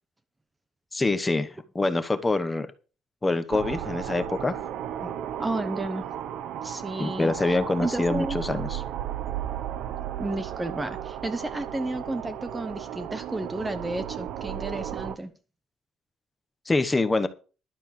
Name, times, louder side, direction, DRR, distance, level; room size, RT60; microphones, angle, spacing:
voice 1, 0.9-2.7 3.2-4.5 5.0-5.2 7.0-8.8 16.7-17.3, left 2 dB, 15° left, 1.0 m, -25 dB
sound 1, 3.5-15.2, right 10 dB, 70° right, 0.9 m, -34 dB
voice 2, 5.4-6.0 6.6-7.3 7.8-8.4 10.2-15.3, right 2 dB, 10° right, 0.9 m, -32 dB
11.5 x 6.6 x 7.5 m
cardioid pair, 170°, 0 cm